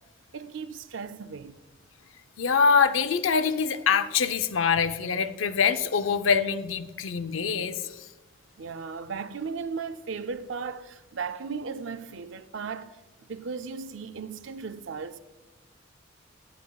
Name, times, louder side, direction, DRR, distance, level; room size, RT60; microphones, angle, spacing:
voice 1, 0.3-1.5 8.6-12.9 13.3-15.2, right 5 dB, 75° right, 0.5 m, -36 dB
voice 2, 2.4-8.1, left 6 dB, 85° left, 0.6 m, -24 dB
11.5 x 9.2 x 2.3 m
head